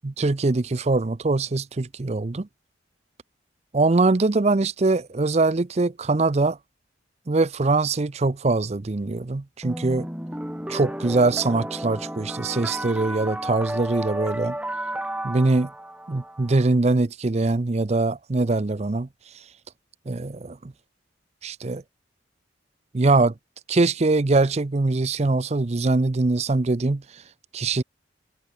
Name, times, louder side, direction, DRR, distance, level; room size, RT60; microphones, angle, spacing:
voice 1, 0.0-2.3 3.7-6.6 7.3-10.1 10.7-14.6 15.2-15.7 16.1-19.1 20.1-20.6 21.4-21.8 22.9-23.3 23.7-27.2 27.5-27.8, right 3 dB, 35° right, 0.6 m, -22 dB
sound 1, 9.6-16.6, right 1 dB, 5° right, 2.0 m, -32 dB
head